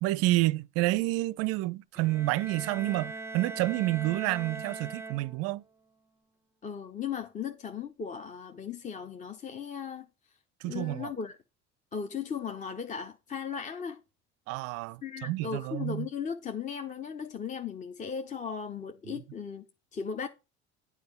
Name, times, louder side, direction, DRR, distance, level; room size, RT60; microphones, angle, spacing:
voice 1, 0.0-5.6 10.6-11.1 14.5-16.1 19.1-19.2, right 18 dB, 45° right, 0.5 m, -29 dB
Bowed string instrument, 1.9-5.6, right 3 dB, 5° right, 0.7 m, -41 dB
voice 2, 6.6-10.1 10.6-11.4 11.9-14.0 15.0-19.7 19.9-20.3, left 6 dB, 20° left, 0.7 m, -37 dB
9.5 x 4.7 x 5.1 m
figure-of-eight pair, 65°, 34 cm